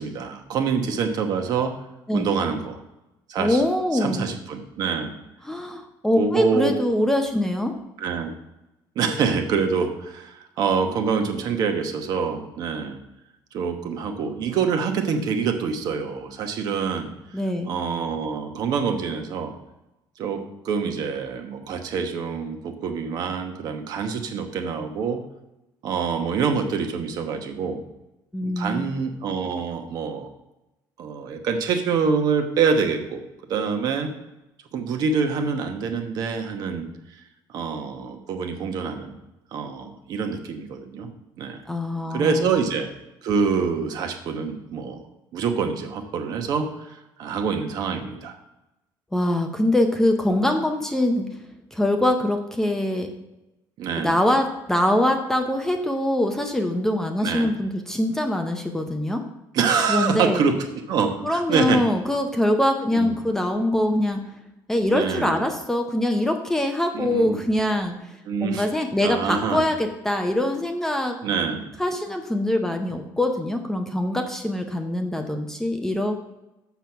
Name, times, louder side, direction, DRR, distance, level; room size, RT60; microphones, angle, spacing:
voice 1, 0.0-1.7 2.1-2.8 3.3-3.6 3.9-5.1 6.2-6.7 8.0-8.3 9.0-13.0 13.5-17.1 17.6-19.5 20.2-25.2 25.8-27.8 28.4-30.3 31.0-33.2 33.5-34.1 34.7-36.9 37.5-39.2 39.5-41.1 41.4-41.6 42.1-42.9 43.2-45.0 45.3-48.4 53.8-54.2 57.2-57.5 59.5-60.5 60.9-61.9 62.9-63.2 64.9-65.4 66.9-67.4 68.3-68.7 69.0-69.6 71.2-71.6, right 5 dB, 50° right, 5 dB, 1.0 m, -26 dB
voice 2, 3.4-4.3 5.4-7.7 17.3-17.7 28.3-29.0 41.7-42.5 49.1-51.3 51.7-53.1 54.0-59.2 59.9-60.5 61.2-64.2 64.7-68.0 68.4-71.2 71.8-76.1, left 1 dB, 5° left, 4 dB, 0.6 m, -23 dB
7.1 x 6.1 x 5.7 m, 0.96 s
cardioid pair, 170°, 8 cm